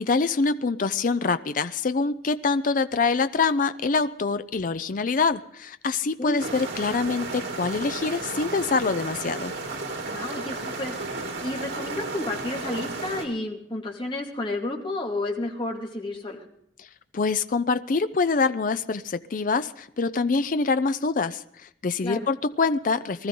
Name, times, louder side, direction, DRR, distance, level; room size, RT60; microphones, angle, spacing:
voice 1, 0.0-9.5 16.8-16.9 17.1-23.3, left 4 dB, 45° left, 11 dB, 0.5 m, -25 dB
sound 1, 6.4-13.3, right 3 dB, 90° right, 2.8 m, -33 dB
voice 2, 10.1-10.9 11.4-16.4 22.0-22.2, left 2 dB, 30° left, 0 dB, 2.4 m, -31 dB
20.0 x 14.0 x 3.8 m, 0.70 s
head